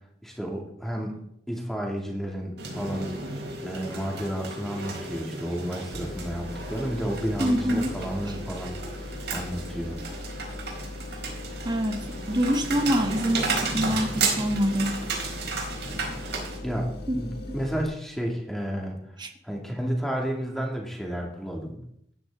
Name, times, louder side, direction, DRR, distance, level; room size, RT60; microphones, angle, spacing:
voice 1, 0.2-1.2 1.5-3.3 3.6-8.8 9.3-10.0 16.6-19.0 19.4-21.8, equal, ahead, -1 dB, 2.7 m, -31 dB
sound 1, 2.6-16.6, right 4 dB, 80° right, 4.3 m, -33 dB
sound 2, 5.9-17.8, left 2 dB, 65° left, 1.4 m, -39 dB
voice 2, 7.4-7.9 8.3-8.4 11.6-15.0 17.1-17.2 19.2-19.3, equal, 25° right, 5 dB, 1.2 m, -26 dB
16.0 x 10.0 x 3.9 m, 0.72 s
head